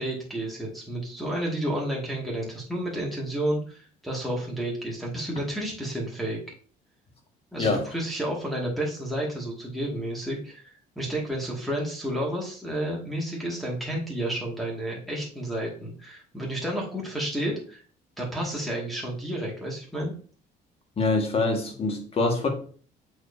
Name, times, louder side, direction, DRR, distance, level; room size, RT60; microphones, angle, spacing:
voice 1, 0.0-6.4 7.5-17.8 18.2-20.1, right 1 dB, ahead, 2.1 m, -31 dB
voice 2, 21.0-22.5, left 3 dB, 35° left, 1.8 m, -24 dB
7.7 x 4.7 x 2.8 m
cardioid pair, 110°, 17 cm